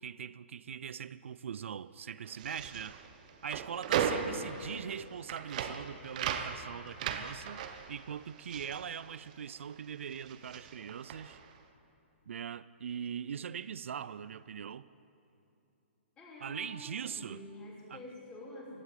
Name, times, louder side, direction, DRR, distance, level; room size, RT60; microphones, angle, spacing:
voice 1, 0.0-3.0 3.4-7.6 7.9-11.4 12.3-14.9 16.4-17.4 17.9-18.0, right 8 dB, 80° right, 0.4 m, -41 dB
sound 1, 2.3-9.8 10.0-11.5, right 7 dB, 35° right, 0.9 m, -37 dB
voice 2, 16.2-18.8, left 1 dB, 15° left, 3.1 m, -47 dB
16.0 x 8.1 x 9.3 m
hypercardioid pair, 165°, 7 cm